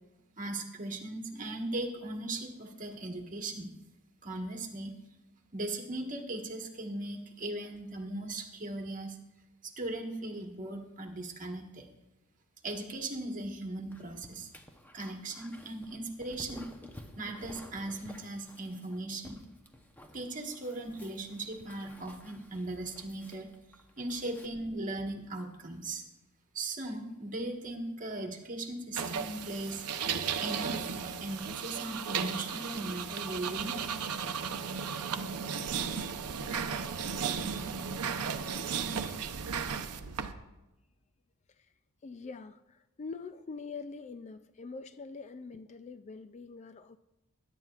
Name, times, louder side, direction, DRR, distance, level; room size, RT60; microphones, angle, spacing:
voice 1, 0.4-3.7 4.2-4.9 5.5-9.2 9.6-11.9 12.6-14.5 14.9-16.7 17.2-19.4 20.1-23.5 24.0-26.0 26.5-29.8 30.4-33.8, right 2 dB, 35° right, 1.5 m, -38 dB
Dog, 13.9-24.5, left 1 dB, 10° left, 0.8 m, -53 dB
sound 1, 28.9-40.3, right 6 dB, 85° right, 0.7 m, -35 dB
voice 2, 42.0-47.0, left 4 dB, 30° left, 0.3 m, -44 dB
21.0 x 10.5 x 2.4 m
head